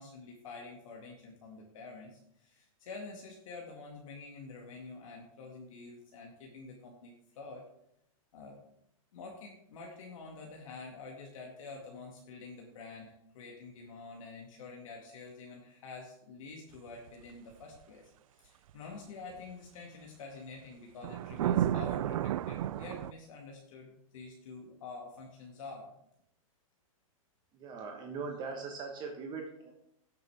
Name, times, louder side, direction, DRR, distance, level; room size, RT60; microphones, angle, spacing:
voice 1, 0.0-7.6 8.3-8.6 9.1-18.1 18.4-25.9, left 3 dB, 65° left, 0 dB, 1.9 m, -48 dB
sound 1, 16.9-17.1 21.0-23.1, right 11 dB, 70° right, 0.4 m, -31 dB
voice 2, 27.5-29.7, right 4 dB, 25° right, 2 dB, 1.2 m, -40 dB
16.5 x 6.8 x 3.5 m, 0.77 s
hypercardioid pair, 150°, 18 cm